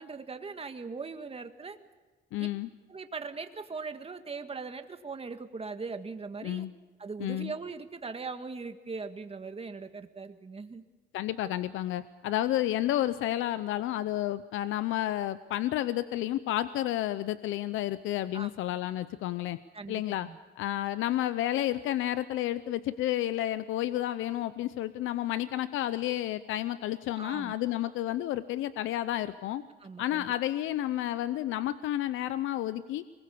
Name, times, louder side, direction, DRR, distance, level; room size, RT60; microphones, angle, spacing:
voice 1, 0.0-1.8 2.4-2.5 2.9-6.7 7.0-10.8 18.3-18.5 19.7-20.4 27.2-27.5 29.8-30.3, right 4 dB, 30° right, 7 dB, 1.8 m, -40 dB
voice 2, 2.3-2.7 6.4-6.7 7.2-7.5 11.1-19.6 19.9-20.3 20.6-29.6 30.0-33.0, left 13 dB, 90° left, 13 dB, 0.7 m, -31 dB
24.0 x 21.0 x 7.0 m, 1.3 s
cardioid pair, 90°, 20 cm